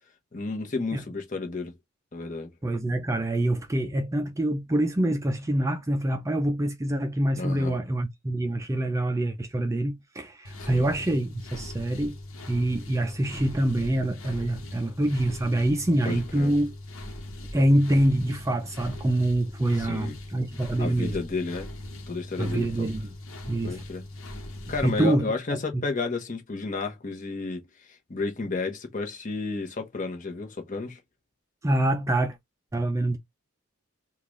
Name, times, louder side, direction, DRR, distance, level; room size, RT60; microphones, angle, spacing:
voice 1, 0.3-1.7 2.1-2.5 7.4-7.8 10.6-10.9 16.0-16.5 19.8-20.2 20.8-21.7 22.1-22.9 23.6-24.0 24.7-27.6 27.9-31.0, left 3 dB, 40° left, 0.9 m, -32 dB
voice 2, 2.6-12.1 12.5-16.7 17.5-21.2 22.4-23.2 23.5-23.8 24.8-25.3 25.5-25.6 31.6-32.4 32.7-33.2, right 1 dB, 15° right, 0.4 m, -25 dB
sound 1, 10.4-25.0, left 1 dB, 70° left, 1.1 m, -40 dB
3.7 x 2.4 x 3.1 m
head